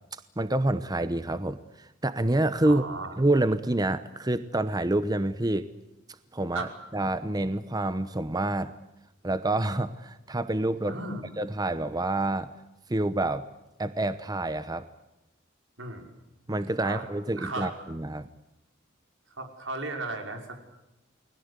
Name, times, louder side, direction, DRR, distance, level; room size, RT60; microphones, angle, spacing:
voice 1, 0.1-2.8 3.2-5.7 6.3-8.7 9.2-11.0 11.4-12.5 12.9-13.5 13.8-14.8 16.5-18.3, right 2 dB, 20° right, 12 dB, 0.9 m, -27 dB
voice 2, 2.6-3.2 6.5-6.7 10.9-11.3 15.8-16.1 16.8-17.1 17.4-17.7 19.4-20.7, right 2 dB, 85° right, 4 dB, 5.4 m, -35 dB
30.0 x 21.0 x 8.2 m, 0.94 s
head